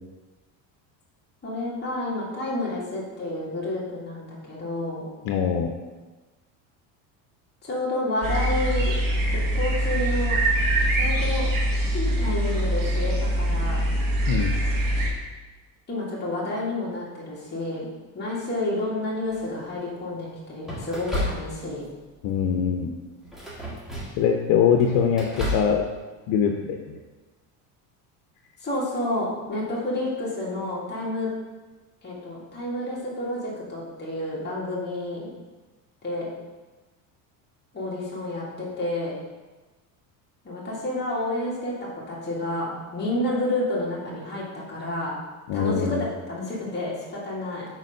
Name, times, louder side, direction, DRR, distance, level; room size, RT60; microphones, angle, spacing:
voice 1, 1.4-5.1 7.6-8.9 9.5-10.4 10.9-11.5 11.9-13.8 15.9-17.9 18.1-21.9 28.6-31.3 32.0-35.3 36.0-36.3 37.7-39.2 40.4-45.2 45.5-47.7, left 1 dB, 20° left, -6 dB, 1.9 m, -30 dB
voice 2, 5.2-5.7 14.3-14.6 22.2-22.9 24.2-25.3 25.5-25.8 26.3-27.0 45.5-46.1, left 7 dB, 70° left, 3 dB, 0.7 m, -22 dB
sound 1, 8.2-15.1, right 1 dB, 45° right, 1.4 m, -23 dB
sound 2, 19.3-19.7 20.6-21.9 22.2-22.6 23.2-24.3 24.7-25.8, equal, ahead, 1.9 m, -32 dB
4.5 x 4.0 x 5.3 m, 1.2 s
supercardioid pair, 95°, 47 cm